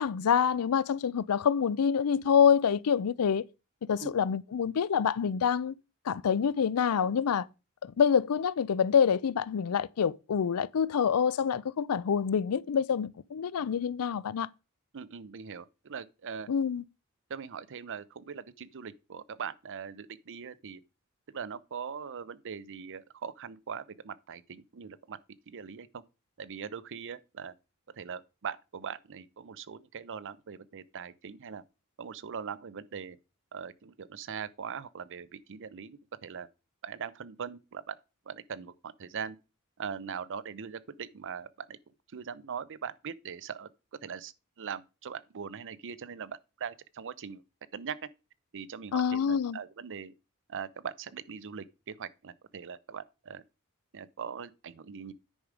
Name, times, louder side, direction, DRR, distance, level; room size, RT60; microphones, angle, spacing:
voice 1, 0.0-3.4 3.9-5.7 6.1-7.5 7.8-14.5 16.5-16.8 48.9-49.6, left 7 dB, 80° left, 0.4 m, -26 dB
voice 2, 14.9-16.5 17.3-20.8 21.3-25.2 25.5-26.0 26.4-27.5 27.9-31.6 32.0-33.2 33.5-36.5 36.8-38.0 38.3-39.4 39.8-41.8 42.1-43.7 44.0-47.4 47.7-48.1 48.5-50.1 50.5-53.4 53.9-55.1, right 6 dB, 60° right, 0.6 m, -41 dB
9.9 x 4.9 x 5.1 m
head